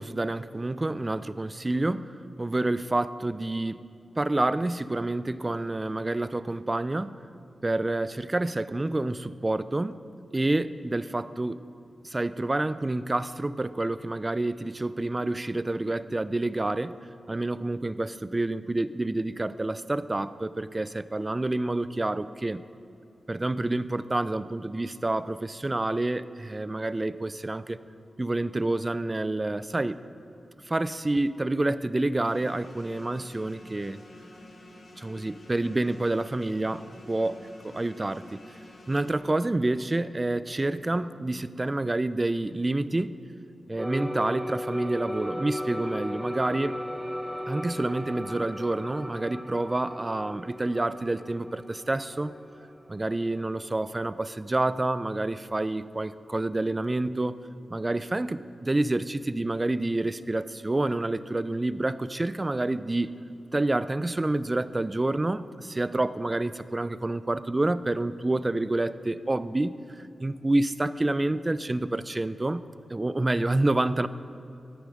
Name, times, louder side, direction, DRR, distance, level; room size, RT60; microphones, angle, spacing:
voice 1, 0.0-3.8 4.2-7.2 7.6-10.0 10.3-11.6 12.0-16.9 17.3-22.6 23.3-27.8 28.2-30.0 30.7-34.0 35.0-37.3 37.7-38.4 38.9-43.2 43.7-46.8 47.5-52.3 52.9-57.4 57.7-63.2 63.5-72.6 72.9-74.1, right 2 dB, 30° right, 15 dB, 0.4 m, -28 dB
sound 1, 32.2-39.1, left 1 dB, 65° left, 2.1 m, -49 dB
sound 2, 43.8-53.6, equal, 5° right, 1.0 m, -36 dB
13.5 x 9.1 x 5.0 m, 2.6 s
cardioid pair, 50°, 0 cm